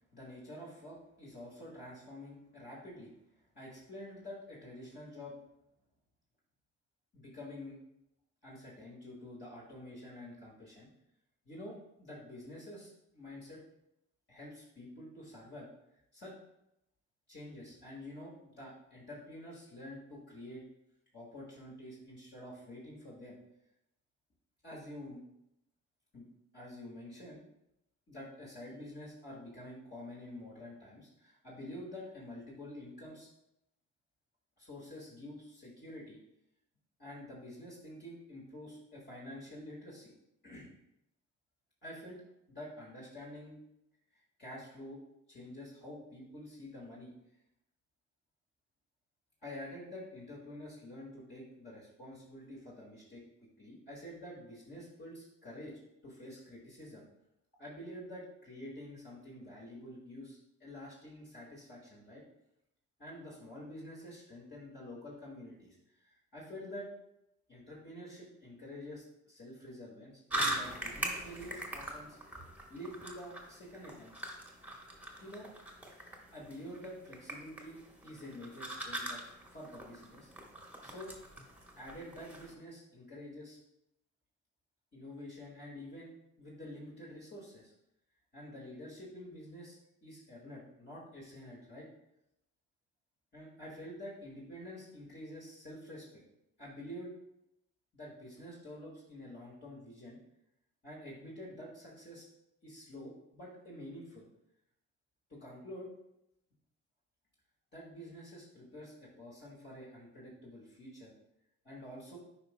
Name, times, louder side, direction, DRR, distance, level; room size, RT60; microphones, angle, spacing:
voice 1, 0.1-3.1 3.6-5.3 7.1-7.8 8.4-10.9 11.5-13.6 14.3-15.7 16.1-16.3 17.3-20.6 21.1-23.4 24.6-25.2 26.1-26.3 26.5-27.4 28.1-33.3 34.6-36.2 37.0-40.1 40.4-40.7 41.8-42.2 42.5-43.6 44.1-45.0 45.3-47.1 49.4-53.2 53.6-55.7 56.0-57.0 57.6-62.2 63.0-66.9 67.5-72.2 72.7-74.1 75.2-75.5 76.3-79.2 79.5-80.3 80.8-81.1 81.8-83.6 84.9-86.1 86.4-87.7 88.3-91.9 93.3-96.2 96.6-97.1 97.9-100.2 100.8-102.2 102.6-104.3 105.3-105.9 107.7-111.1 111.6-112.2, left 1 dB, 35° left, -6 dB, 1.8 m, -48 dB
sound 1, 70.3-82.5, right 1 dB, 5° right, 1.2 m, -42 dB
9.4 x 4.9 x 2.2 m, 0.84 s
cardioid pair, 90°, 30 cm